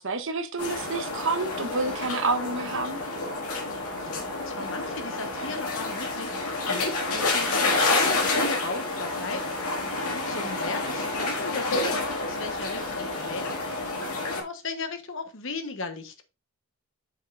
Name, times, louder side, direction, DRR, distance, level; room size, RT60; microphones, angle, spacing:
voice 1, 0.0-3.0, right 3 dB, 60° right, 1.1 m, -29 dB
sound 1, 0.6-14.4, left 3 dB, 80° left, 2.1 m, -29 dB
voice 2, 4.0-13.6 14.2-16.3, left 3 dB, 60° left, 1.2 m, -36 dB
8.2 x 6.4 x 2.6 m
head